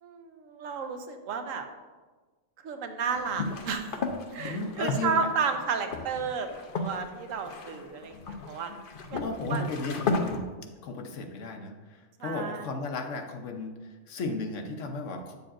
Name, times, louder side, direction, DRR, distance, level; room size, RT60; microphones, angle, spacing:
voice 1, 0.0-1.6 2.6-4.0 4.3-6.5 6.8-8.7 9.1-9.2 9.5-9.6 12.2-12.6, right 5 dB, 90° right, 6 dB, 1.1 m, -32 dB
sound 1, 3.2-10.4, left 3 dB, 50° left, 0.7 m, -34 dB
voice 2, 4.5-5.2 9.1-10.5 10.8-13.7 14.1-15.4, left 3 dB, 70° left, 4 dB, 1.1 m, -35 dB
8.8 x 6.8 x 2.5 m, 1.3 s
omnidirectional pair, 1.3 m